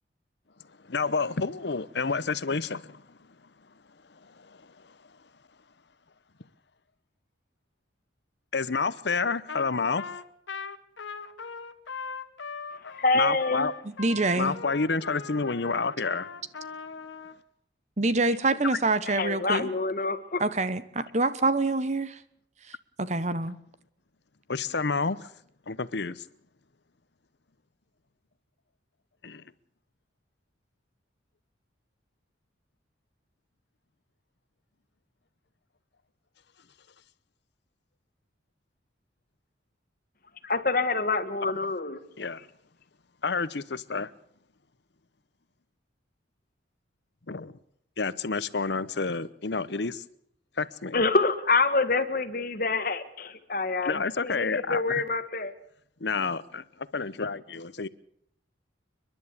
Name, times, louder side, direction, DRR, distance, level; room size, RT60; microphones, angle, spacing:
voice 1, 0.9-3.0 8.5-10.1 13.1-13.7 14.4-16.3 24.5-25.3 25.7-26.2 29.2-29.4 42.2-42.4 43.2-44.1 47.3-47.6 48.0-50.0 50.6-51.0 53.8-55.0 56.0-57.9, left 4 dB, 65° left, 0.9 m, -29 dB
Trumpet, 9.5-9.7 10.0-17.4, left 5 dB, 85° left, 1.4 m, -40 dB
voice 2, 13.0-13.7 19.1-20.4 40.4-42.0 50.9-55.5, left 3 dB, 50° left, 1.5 m, -26 dB
voice 3, 14.0-14.5 18.0-19.7 20.4-22.2 23.0-23.6, right 2 dB, 40° right, 1.2 m, -26 dB
30.0 x 11.0 x 8.3 m
head